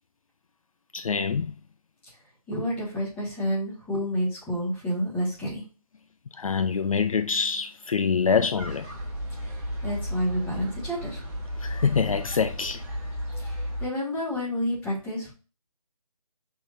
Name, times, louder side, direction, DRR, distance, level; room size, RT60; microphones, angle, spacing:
voice 1, 0.9-1.5 6.4-8.9 11.6-12.8, left 6 dB, 60° left, 0.4 m, -25 dB
voice 2, 2.5-5.6 9.8-11.2 13.4-15.3, equal, 5° left, 1.3 m, -29 dB
sound 1, 8.6-13.9, equal, 20° right, 1.3 m, -34 dB
5.9 x 3.6 x 2.5 m
figure-of-eight pair, 165°, 20 cm